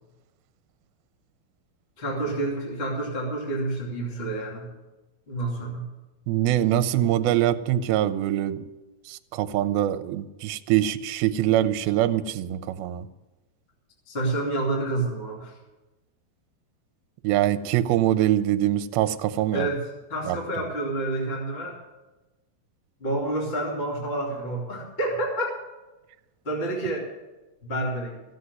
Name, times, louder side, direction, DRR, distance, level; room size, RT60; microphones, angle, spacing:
voice 1, 2.0-4.7 5.3-5.9 14.1-15.6 19.5-21.8 23.0-25.6 26.4-27.1 27.6-28.2, right 2 dB, 20° left, -1 dB, 2.3 m, -29 dB
voice 2, 6.3-8.6 9.1-13.1 17.2-19.7 20.3-20.4, right 12 dB, 85° right, 14 dB, 2.5 m, -23 dB
15.5 x 7.9 x 9.6 m, 1.1 s
omnidirectional pair, 4.3 m